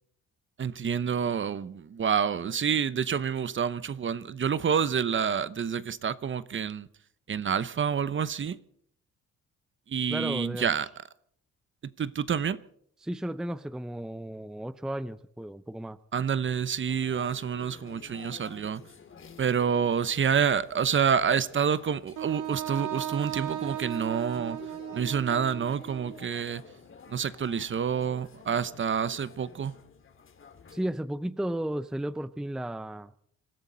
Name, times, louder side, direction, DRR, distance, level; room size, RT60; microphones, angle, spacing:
voice 1, 0.6-6.9 7.3-8.6 9.9-10.9 12.0-12.6 16.1-18.8 19.4-24.6 24.9-26.6 27.1-29.7, right 7 dB, 40° right, 0.9 m, -28 dB
voice 2, 10.1-10.7 13.0-16.0 30.7-33.1, right 1 dB, ahead, 0.6 m, -34 dB
sound 1, 16.9-30.9, left 6 dB, 40° left, 2.5 m, -51 dB
Wind instrument woodwind instrument, 22.2-26.2, right 11 dB, 85° right, 1.8 m, -36 dB
26.0 x 14.0 x 4.0 m
cardioid pair, 90°, 30 cm